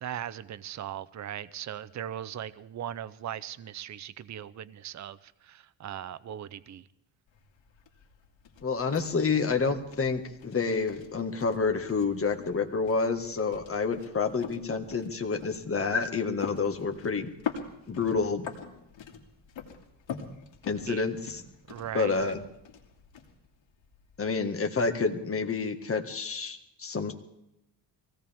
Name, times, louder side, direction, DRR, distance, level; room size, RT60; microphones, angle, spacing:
voice 1, 0.0-6.9 20.8-21.0 21.7-22.3, right 10 dB, 35° right, 16 dB, 0.6 m, -39 dB
sound 1, 7.3-24.3, left 7 dB, 70° left, 2.5 m, -44 dB
voice 2, 8.6-17.3 17.9-18.5 20.6-21.4 21.9-22.4 24.2-27.1, left 4 dB, 30° left, 5 dB, 1.7 m, -29 dB
23.5 x 17.0 x 3.5 m, 0.84 s
cardioid pair, 100°, 47 cm